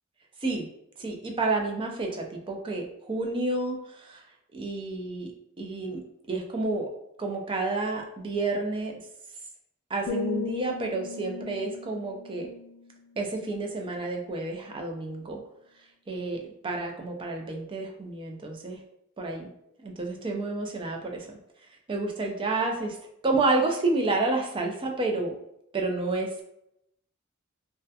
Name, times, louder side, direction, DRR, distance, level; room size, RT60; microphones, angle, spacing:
voice 1, 1.0-4.2 4.5-5.3 5.6-6.9 7.2-8.9 9.9-12.5 13.2-15.4 16.1-18.8 19.2-19.5 19.8-21.4 21.9-22.9 23.2-25.3 25.7-26.4, right 3 dB, 25° right, 2 dB, 0.4 m, -30 dB
sound 1, 10.1-14.0 14.4-14.7, left 6 dB, 75° left, 0.3 m, -38 dB
2.3 x 2.1 x 2.6 m, 0.79 s
head